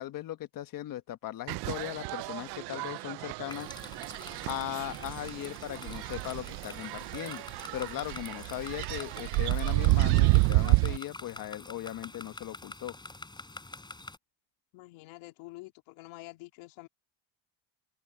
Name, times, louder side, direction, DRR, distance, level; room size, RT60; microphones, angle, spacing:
voice 1, 0.0-3.7 4.5-7.4 7.7-12.9, left 13 dB, 45° left, 1.4 m, -38 dB
sound 1, 1.5-11.0, right 25 dB, 60° right, 0.5 m, -29 dB
sound 2, 3.5-14.2, left 2 dB, 10° left, 4.4 m, -47 dB
voice 2, 14.7-16.9, left 21 dB, 75° left, 3.1 m, -47 dB
cardioid pair, 130°, 46 cm